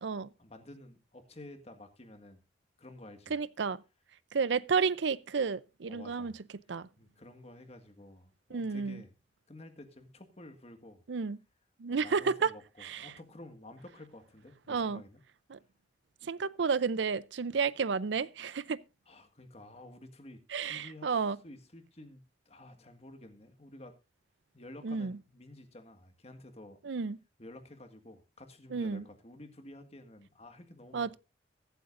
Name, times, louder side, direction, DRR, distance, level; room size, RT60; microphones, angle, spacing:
voice 1, 0.4-2.4 2.8-3.3 5.9-6.4 6.7-9.1 9.5-11.0 11.9-12.6 13.0-15.2 19.1-24.0 24.5-26.8 27.4-31.2, left 1 dB, 35° left, 1.7 m, -51 dB
voice 2, 3.3-3.8 4.3-6.3 6.7-6.9 8.5-9.0 11.1-11.4 11.8-12.5 12.8-13.1 14.7-15.0 15.5-15.6 16.2-18.8 20.5-21.4 24.8-25.2 26.8-27.2 28.7-29.0 30.9-31.2, right 5 dB, 75° right, 0.5 m, -31 dB
23.0 x 7.9 x 2.5 m
head